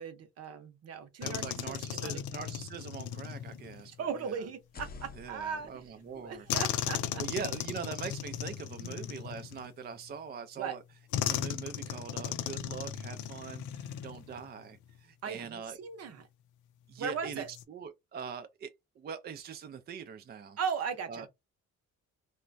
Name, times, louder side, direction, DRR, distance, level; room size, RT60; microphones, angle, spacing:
voice 1, 0.0-2.2 4.0-5.8 6.2-7.2 8.8-9.0 10.6-10.8 14.3-14.5 15.2-16.3 17.0-17.5 20.6-21.3, right 6 dB, 55° right, 0.8 m, -38 dB
sound 1, 1.2-3.9 6.5-10.0 11.1-14.5 14.8-15.0 17.3-17.6, left 10 dB, 80° left, 0.5 m, -36 dB
voice 2, 1.2-3.9 4.2-4.4 5.2-6.5 7.2-10.8 11.3-15.8 16.9-20.6 21.1-21.3, right 6 dB, 35° right, 0.4 m, -42 dB
sound 2, 4.6-8.4, left 4 dB, 30° left, 0.6 m, -52 dB
3.0 x 2.2 x 2.5 m
cardioid pair, 90°, 30 cm